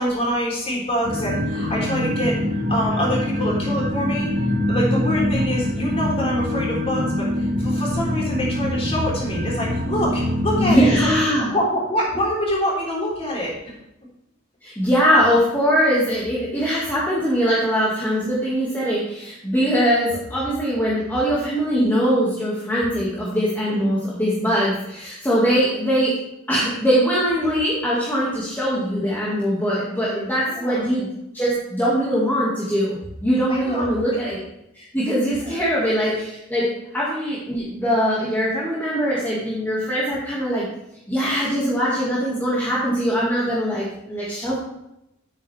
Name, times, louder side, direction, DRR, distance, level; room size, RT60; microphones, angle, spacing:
voice 1, 0.0-2.4 2.7-4.3 4.7-11.1 11.4-13.5 23.7-23.9 30.4-30.9 33.5-34.2 35.3-35.7, equal, 30° left, -4 dB, 3.8 m, -25 dB
sound 1, 1.0-11.1, left 1 dB, 40° right, 1.7 m, -24 dB
voice 2, 10.6-11.5 14.6-26.1 26.5-31.1 31.3-33.0 33.2-34.4 34.7-36.7 36.9-40.7 41.1-44.5, equal, 10° left, -8 dB, 2.2 m, -21 dB
10.5 x 9.1 x 3.5 m, 0.84 s
head